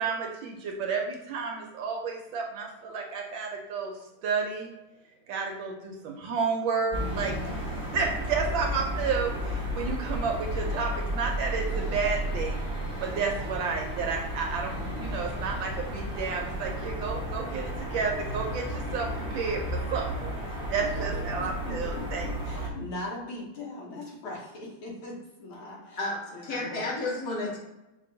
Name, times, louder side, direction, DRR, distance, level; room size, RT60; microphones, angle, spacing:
voice 1, 0.0-4.8 5.3-7.6 7.9-12.6 13.0-22.3, right 5 dB, 75° right, 1 dB, 1.2 m, -31 dB
sound 1, 6.9-22.7, equal, 10° right, 0.3 m, -33 dB
voice 2, 20.8-26.9, left 2 dB, 80° left, -1 dB, 1.8 m, -40 dB
voice 3, 25.6-27.6, left 2 dB, 55° left, -3 dB, 1.2 m, -32 dB
5.4 x 2.9 x 2.6 m, 0.99 s
omnidirectional pair, 2.3 m